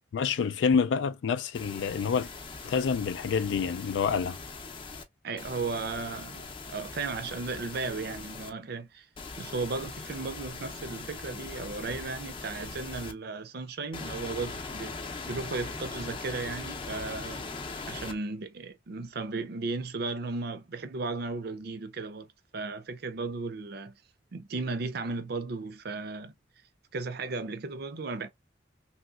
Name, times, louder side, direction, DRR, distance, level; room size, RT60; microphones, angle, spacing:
voice 1, 0.1-2.3 2.6-4.4, left 6 dB, 90° left, 0.3 m, -27 dB
sound 1, 1.5-5.0 5.4-8.5 9.2-13.1 13.9-18.1, left 4 dB, 30° left, 0.6 m, -41 dB
voice 2, 5.2-9.1 9.4-17.4 17.9-24.0 24.3-26.3 26.9-28.3, right 3 dB, 60° right, 0.5 m, -35 dB
3.1 x 2.8 x 2.4 m
head